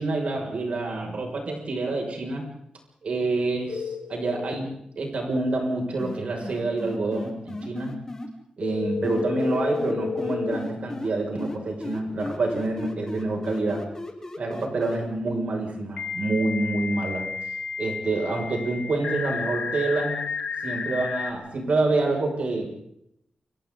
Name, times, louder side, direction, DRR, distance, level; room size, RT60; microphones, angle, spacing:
voice 1, 0.0-2.4 3.0-4.7 5.0-8.0 8.6-13.8 14.4-17.3 17.8-20.2 20.6-22.7, right 2 dB, 65° right, 1 dB, 6.4 m, -27 dB
sound 1, 3.7-4.6 8.6-10.6 13.2-13.3 16.0-21.3, left 5 dB, 85° left, 2.4 m, -31 dB
sound 2, 6.0-8.3 9.0-11.1 11.4-15.0, left 2 dB, 25° left, 3.6 m, -35 dB
29.5 x 26.0 x 4.0 m, 0.75 s
wide cardioid pair, 165°, 2 cm